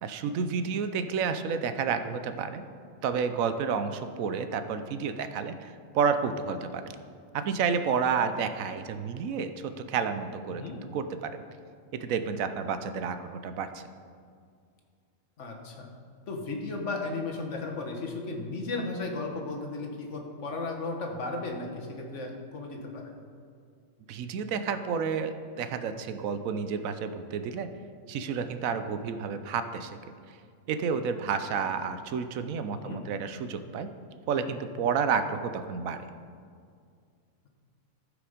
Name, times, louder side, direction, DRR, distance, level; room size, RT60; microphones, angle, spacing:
voice 1, 0.0-2.6 3.0-6.8 7.3-10.6 10.9-11.4 11.9-13.8 24.1-27.7 28.1-30.0 30.7-33.9 34.3-36.1, right 6 dB, 80° right, 9 dB, 1.0 m, -30 dB
voice 2, 15.4-15.9 16.3-23.1 32.7-33.0, left 3 dB, 60° left, 2 dB, 1.5 m, -35 dB
15.0 x 5.1 x 5.0 m, 2.2 s
omnidirectional pair, 1.4 m